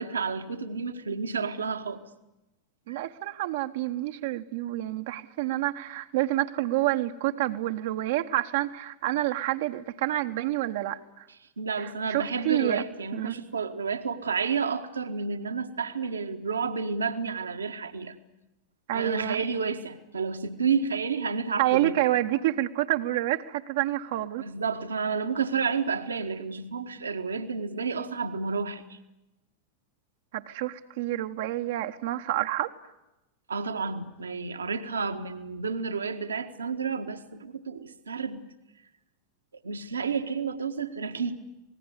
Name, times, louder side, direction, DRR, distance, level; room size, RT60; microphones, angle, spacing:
voice 1, 0.0-2.0 2.9-3.0 11.6-18.1 18.9-22.1 24.4-29.0 33.5-38.5 39.5-41.5, right 5 dB, 75° right, 7 dB, 1.7 m, -31 dB
voice 2, 2.9-11.3 11.8-12.8 13.1-13.3 18.9-19.4 21.6-24.4 30.3-32.7, right 15 dB, 55° right, 6 dB, 1.2 m, -28 dB
27.0 x 19.5 x 9.8 m, 0.97 s
figure-of-eight pair, 90°, 0 cm